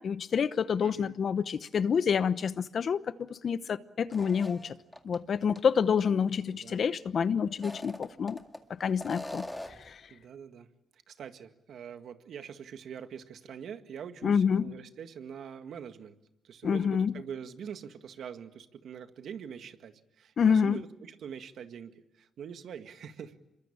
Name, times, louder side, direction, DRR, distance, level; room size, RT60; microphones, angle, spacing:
voice 1, 0.0-4.7 5.0-8.4 8.7-9.5 9.9-10.0 14.2-14.7 16.6-17.1 20.4-20.8, left 6 dB, 50° left, 1.0 m, -27 dB
voice 2, 0.8-1.1 6.4-6.8 10.1-10.7 11.1-16.1 16.4-23.4, right 7 dB, 65° right, 1.9 m, -44 dB
sound 1, 4.1-5.2 5.6-5.7 7.5-8.6 9.0-9.9, left 1 dB, 10° left, 2.1 m, -41 dB
27.0 x 23.0 x 8.7 m
cardioid pair, 90°, 0 cm